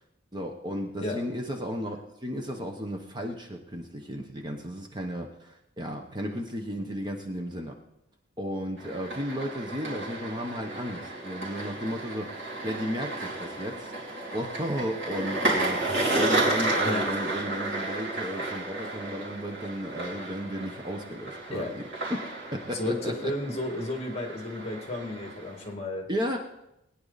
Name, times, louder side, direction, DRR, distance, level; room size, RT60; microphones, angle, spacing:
voice 1, 0.3-7.8 8.4-13.9 14.3-21.8 22.1-23.3 26.1-26.4, equal, 20° right, 3 dB, 1.1 m, -34 dB
sound 1, 8.8-25.7, right 2 dB, 85° right, 3.4 m, -32 dB
voice 2, 15.9-16.2 16.8-17.1 17.3-17.5 21.5-21.7 22.8-26.1, left 1 dB, 30° left, 2 dB, 2.1 m, -33 dB
20.5 x 9.8 x 4.1 m, 0.85 s
head